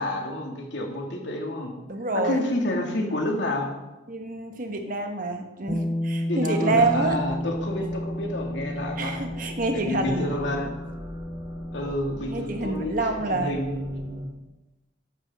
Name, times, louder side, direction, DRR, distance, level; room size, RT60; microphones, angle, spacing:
voice 1, 0.0-1.7 2.1-3.7 6.2-9.2 9.7-10.7 11.7-14.2, left 1 dB, 80° left, 1 dB, 2.4 m, -29 dB
voice 2, 1.9-2.4 4.1-7.2 9.0-10.3 12.3-13.6, right 3 dB, 50° right, 5 dB, 1.4 m, -27 dB
Bass guitar, 5.7-11.9, left 1 dB, 15° left, 0.4 m, -32 dB
sound 1, 6.8-14.3, equal, 20° right, 2.3 m, -43 dB
14.0 x 10.5 x 3.7 m, 1.0 s
head